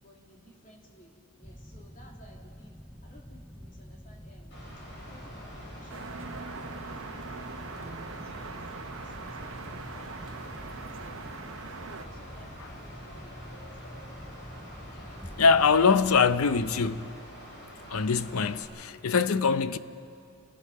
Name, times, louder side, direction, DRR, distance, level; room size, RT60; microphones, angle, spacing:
voice 1, 0.0-4.6 5.0-8.6 9.0-11.1 11.5-13.7, equal, 40° left, 2.9 m, -57 dB
sound 1, 1.4-17.0, equal, 5° left, 0.4 m, -46 dB
Mechanical fan, 4.5-18.6, equal, 55° left, 5.4 m, -47 dB
sound 2, 5.9-12.1, right 4 dB, 65° right, 1.1 m, -42 dB
voice 2, 15.4-17.1 17.9-19.8, left 5 dB, 85° left, 0.6 m, -23 dB
28.5 x 17.5 x 5.5 m
head